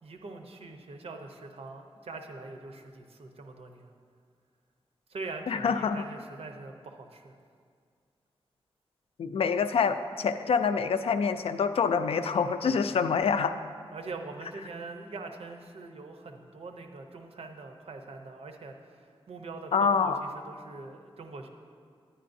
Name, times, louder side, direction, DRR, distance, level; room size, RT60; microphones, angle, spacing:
voice 1, 0.0-3.9 5.1-7.4 12.6-13.0 13.9-21.5, right 3 dB, 85° right, 4 dB, 0.7 m, -43 dB
voice 2, 5.5-6.0 9.2-13.6 19.7-20.2, left 6 dB, 75° left, 10 dB, 0.4 m, -26 dB
9.9 x 9.9 x 2.6 m, 2.1 s
wide cardioid pair, 135°, 10 cm